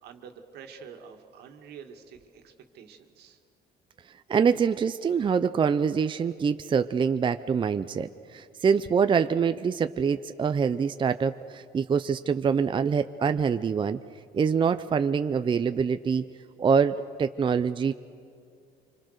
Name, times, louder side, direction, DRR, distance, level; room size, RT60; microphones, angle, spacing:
voice 1, 0.0-3.4, right 6 dB, 75° right, 5 dB, 2.2 m, -47 dB
voice 2, 4.3-14.0 14.3-16.2 16.6-17.9, right 6 dB, 30° right, 10 dB, 0.6 m, -25 dB
26.5 x 25.0 x 6.7 m, 2.3 s
cardioid pair, 110°, 17 cm